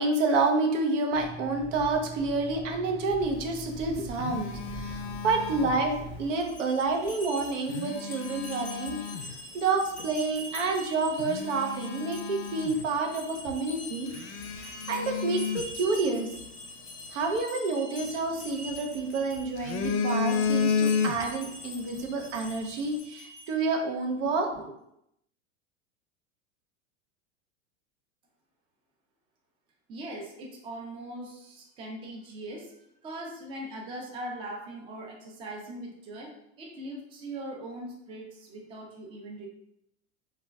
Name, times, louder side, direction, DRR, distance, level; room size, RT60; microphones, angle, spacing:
voice 1, 0.0-9.0 9.5-14.1 14.6-16.3 17.1-24.7, right 3 dB, 90° right, 3 dB, 0.6 m, -29 dB
sound 1, 1.1-6.3, right 2 dB, 55° right, 0.7 m, -42 dB
Telephone, 3.6-6.2 7.5-9.4 10.0-10.2 10.7-10.8 11.1-13.2 13.5-13.6 14.1-16.5 18.0-19.0 19.4-21.5 21.8-22.0, left 6 dB, 70° left, 0.5 m, -32 dB
sound 2, 6.3-23.7, left 2 dB, 25° left, 0.6 m, -44 dB
voice 2, 29.9-32.7 33.0-36.3 36.6-39.5, right 1 dB, 15° right, -1 dB, 0.3 m, -40 dB
2.3 x 2.1 x 3.4 m, 0.79 s
supercardioid pair, 130°, 36 cm